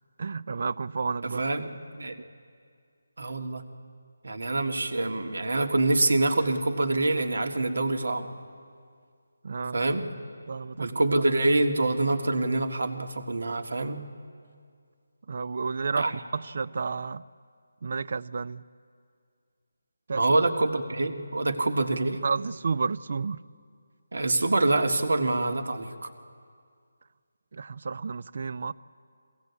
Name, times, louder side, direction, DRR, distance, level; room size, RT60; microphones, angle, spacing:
voice 1, 0.2-1.4 9.4-9.9 10.5-11.0 15.3-17.2 17.8-18.6 20.1-20.2 22.2-23.4 27.5-28.7, right 4 dB, 45° right, 19 dB, 0.4 m, -31 dB
voice 2, 1.2-1.7 1.9-2.2 3.2-3.6 4.2-8.3 9.7-10.0 10.8-14.0 16.0-16.2 20.1-22.2 24.1-26.1, right 2 dB, 75° right, 5 dB, 1.8 m, -26 dB
22.0 x 16.5 x 8.2 m, 2.2 s
figure-of-eight pair, 170°, 0 cm